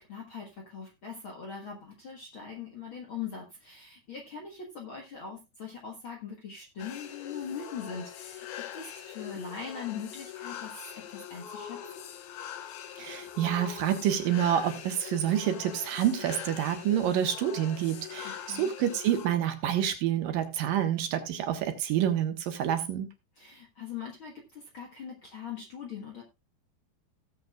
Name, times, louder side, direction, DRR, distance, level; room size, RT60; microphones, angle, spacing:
voice 1, 0.0-8.5 8.7-11.8 18.3-18.7 23.4-26.2, left 6 dB, 55° left, 1.5 m, -41 dB
sound 1, 6.8-19.3, left 10 dB, 80° left, 3.0 m, -42 dB
voice 2, 13.0-23.1, right 10 dB, 70° right, 2.7 m, -28 dB
17.5 x 7.8 x 2.4 m
omnidirectional pair, 4.3 m